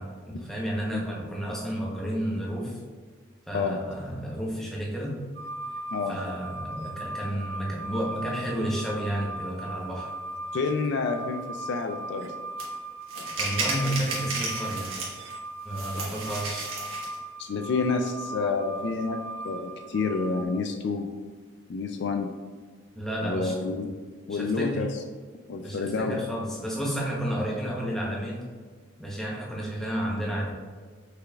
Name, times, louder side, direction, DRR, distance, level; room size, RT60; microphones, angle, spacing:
voice 1, 0.0-2.8 3.5-5.2 6.1-10.1 13.4-15.0 15.6-16.7 22.9-23.6 24.3-24.8 25.6-28.4 29.0-30.5, equal, ahead, -4 dB, 0.8 m, -31 dB
sound 1, 5.4-20.5, right 2 dB, 60° right, 0.4 m, -38 dB
voice 2, 10.5-12.4 17.4-21.1 21.7-22.3 23.2-23.9 24.3-24.9 25.5-26.2, left 4 dB, 55° left, 5 dB, 0.3 m, -29 dB
sound 2, 12.6-12.7 13.1-15.3 15.7-17.1, right 3 dB, 80° right, 1.3 m, -33 dB
5.5 x 4.0 x 2.3 m, 1.5 s
head